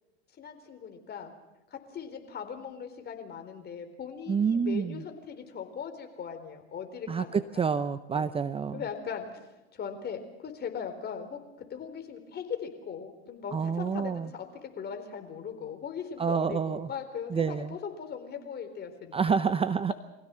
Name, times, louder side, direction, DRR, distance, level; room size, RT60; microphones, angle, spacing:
voice 1, 0.4-1.3 1.7-7.5 8.1-8.3 8.7-9.4 9.8-11.4 11.7-19.4, left 7 dB, 30° left, 6 dB, 4.1 m, -39 dB
voice 2, 4.3-5.0 7.1-8.8 13.5-14.3 16.2-16.9 17.3-17.8 19.1-19.9, right 6 dB, 20° right, 13 dB, 0.7 m, -28 dB
24.5 x 16.0 x 7.6 m, 0.99 s
hypercardioid pair, 95°, 31 cm